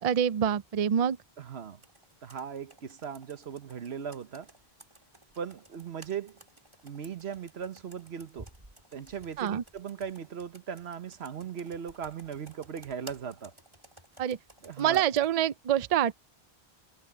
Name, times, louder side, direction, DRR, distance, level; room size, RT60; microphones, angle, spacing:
voice 1, 0.0-1.2 9.4-9.6 14.2-14.4 14.8-16.1, right 9 dB, 50° right, 0.4 m, -26 dB
voice 2, 1.4-1.8 2.2-4.5 5.4-6.4 6.8-8.5 8.9-13.5 14.6-15.0, right 7 dB, 80° right, 1.3 m, -38 dB
Computer keyboard, 1.8-15.3, right 1 dB, 25° right, 2.8 m, -55 dB
omnidirectional pair, 1.1 m